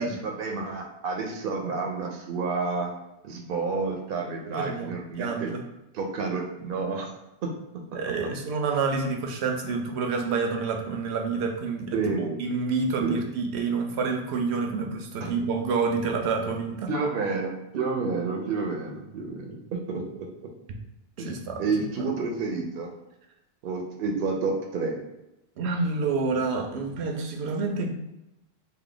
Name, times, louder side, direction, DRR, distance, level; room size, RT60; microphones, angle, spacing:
voice 1, 0.0-2.9 3.2-5.5 5.9-7.1 7.4-7.5 7.9-8.3 11.9-12.5 13.0-13.2 15.2-15.3 16.9-20.3 21.2-21.3 21.6-22.9 23.6-25.0, right 4 dB, 65° right, 2 dB, 0.7 m, -30 dB
voice 2, 4.5-5.6 7.9-12.0 12.4-16.9 21.2-21.6 22.0-22.1 25.6-27.9, right 4 dB, 90° right, 3 dB, 0.9 m, -28 dB
3.3 x 2.0 x 3.7 m, 0.93 s
omnidirectional pair, 1.1 m